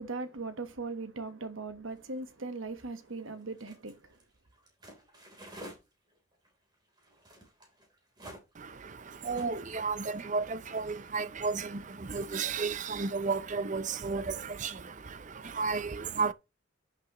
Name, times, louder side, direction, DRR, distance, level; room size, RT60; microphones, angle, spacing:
voice 1, 0.0-4.0, right 3 dB, 80° right, 1.3 m, -39 dB
sound 1, 2.0-5.8 6.1-9.7 10.1-10.8, equal, 20° right, 3.6 m, -50 dB
voice 2, 8.6-16.3, right 4 dB, 40° right, 0.6 m, -33 dB
11.0 x 6.7 x 3.1 m
head